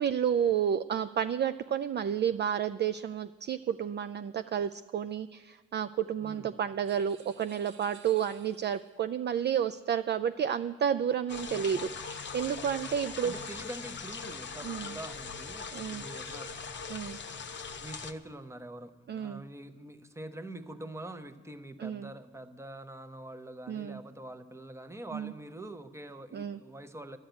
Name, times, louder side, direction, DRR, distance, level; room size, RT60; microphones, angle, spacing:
voice 1, 0.0-13.3 14.6-14.9 15.7-16.0 16.9-17.2 19.1-19.4 21.8-22.1 23.7-24.0 25.1-25.3 26.3-26.6, right 8 dB, 35° right, 11 dB, 0.4 m, -31 dB
voice 2, 6.2-6.6 13.2-16.5 17.8-27.2, right 1 dB, 10° right, 9 dB, 0.9 m, -45 dB
sound 1, 6.8-9.0, right 6 dB, 75° right, 2.0 m, -57 dB
sound 2, 11.3-18.1, left 5 dB, 40° left, 0.9 m, -41 dB
11.5 x 8.0 x 8.9 m, 1.4 s
cardioid pair, 90°, 30 cm